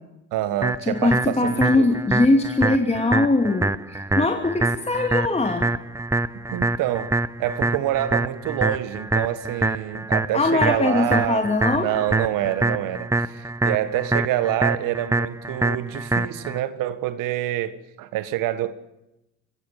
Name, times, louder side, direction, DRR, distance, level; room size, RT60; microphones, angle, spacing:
voice 1, 0.3-1.9 6.5-11.5 11.7-18.7, right 13 dB, 60° right, 1.8 m, -26 dB
sound 1, 0.6-16.6, right 2 dB, 10° right, 0.8 m, -25 dB
voice 2, 0.9-5.7 10.3-11.9, left 2 dB, 15° left, 2.8 m, -21 dB
25.5 x 16.0 x 9.4 m
hypercardioid pair, 60°, 36 cm